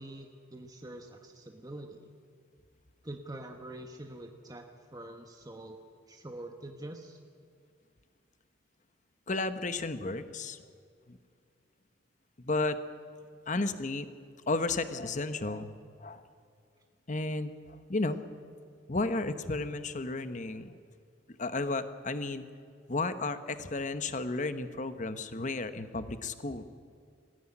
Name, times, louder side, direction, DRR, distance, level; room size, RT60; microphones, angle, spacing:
voice 1, 0.0-2.1 3.0-5.8 6.1-7.2, right 1 dB, 20° right, 3 dB, 1.2 m, -45 dB
voice 2, 9.3-10.6 11.1-11.2 12.4-12.8 13.5-14.1 14.5-15.7 16.0-16.2 17.1-18.2 18.9-20.7 21.4-22.4 22.9-26.6, left 2 dB, 40° left, 11 dB, 1.1 m, -33 dB
20.5 x 15.5 x 10.0 m, 2.3 s
head